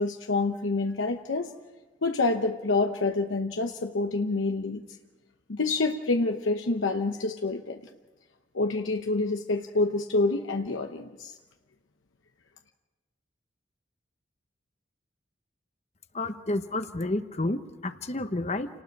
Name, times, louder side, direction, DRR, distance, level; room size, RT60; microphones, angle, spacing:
voice 1, 0.0-1.5 2.0-4.8 5.5-7.8 8.5-11.3, left 3 dB, 90° left, 4 dB, 1.0 m, -27 dB
voice 2, 16.1-18.7, left 2 dB, 35° left, 9 dB, 1.0 m, -30 dB
29.0 x 19.0 x 4.7 m, 1.2 s
head